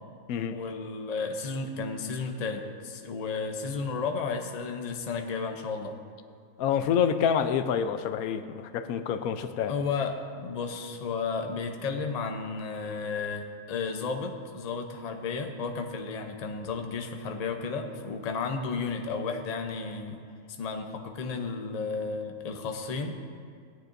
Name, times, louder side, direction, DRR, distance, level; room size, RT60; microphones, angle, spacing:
voice 1, 0.5-5.9 9.7-20.2 20.6-23.2, left 4 dB, 40° left, 4 dB, 0.6 m, -33 dB
voice 2, 6.6-9.7, left 8 dB, 85° left, 9 dB, 1.1 m, -27 dB
16.0 x 9.2 x 2.6 m, 2.3 s
omnidirectional pair, 1.5 m